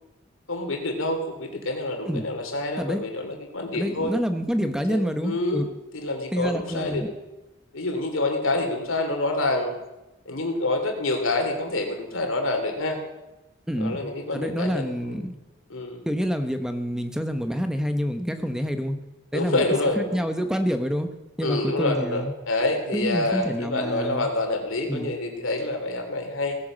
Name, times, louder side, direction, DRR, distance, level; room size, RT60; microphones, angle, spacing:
voice 1, 0.5-4.1 4.9-7.0 7.7-9.7 10.2-13.0 13.8-15.2 15.7-16.0 19.3-20.2 21.4-26.6, left 2 dB, 90° left, 4 dB, 3.1 m, -27 dB
voice 2, 3.7-5.6 6.3-7.1 13.7-15.3 16.1-19.0 19.3-19.7 20.0-21.1 21.4-22.3 22.9-24.3 24.9-25.2, equal, 5° right, 8 dB, 1.0 m, -27 dB
17.5 x 10.5 x 7.4 m, 1.0 s
head